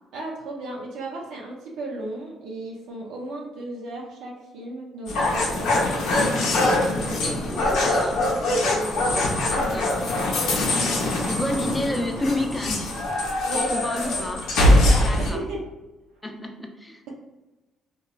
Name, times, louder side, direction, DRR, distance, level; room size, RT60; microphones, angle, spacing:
voice 1, 0.1-6.3 6.9-9.9 13.4-13.8 14.7-15.6, right 2 dB, 85° right, -3 dB, 0.6 m, -35 dB
sound 1, 5.1-15.3, left 1 dB, 80° left, 0.6 m, -23 dB
voice 2, 7.4-8.2 9.1-9.8 11.3-13.0 13.5-14.5 15.0-15.4 16.2-17.1, left 1 dB, 10° left, 3 dB, 0.4 m, -30 dB
2.8 x 2.2 x 2.3 m, 1.1 s
cardioid pair, 85°, 0 cm